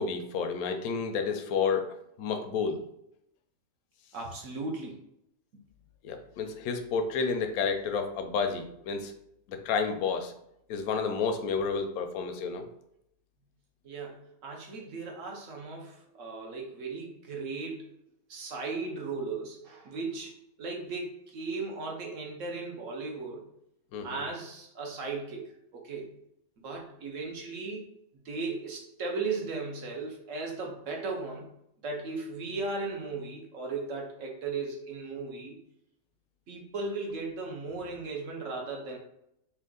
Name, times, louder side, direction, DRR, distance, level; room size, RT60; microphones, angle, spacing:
voice 1, 0.0-2.8 6.0-9.1 9.5-10.3 10.7-12.7 23.9-24.2, left 5 dB, 85° left, 6 dB, 1.0 m, -30 dB
voice 2, 4.1-5.0 13.8-17.9 18.3-20.3 20.6-23.4 24.0-26.1 26.6-27.9 28.2-31.5 31.8-35.6 36.5-39.0, right 3 dB, 65° right, 0 dB, 1.2 m, -36 dB
3.4 x 2.9 x 3.7 m, 0.77 s
omnidirectional pair, 1.5 m